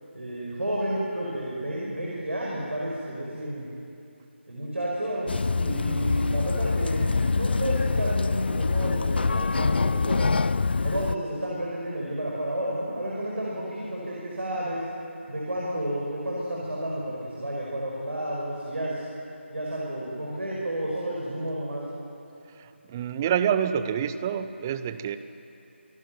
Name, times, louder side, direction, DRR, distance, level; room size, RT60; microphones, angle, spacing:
voice 1, 0.1-3.7 4.5-5.3 5.6-10.4 10.8-14.8 15.3-19.0 19.5-21.9, right 1 dB, 70° right, -5 dB, 5.4 m, -31 dB
sound 1, 5.3-11.2, left 4 dB, 50° left, 0.4 m, -25 dB
voice 2, 22.6-25.2, right 8 dB, 15° right, 12 dB, 0.4 m, -27 dB
27.5 x 12.0 x 9.2 m, 2.7 s
figure-of-eight pair, 160°, 7 cm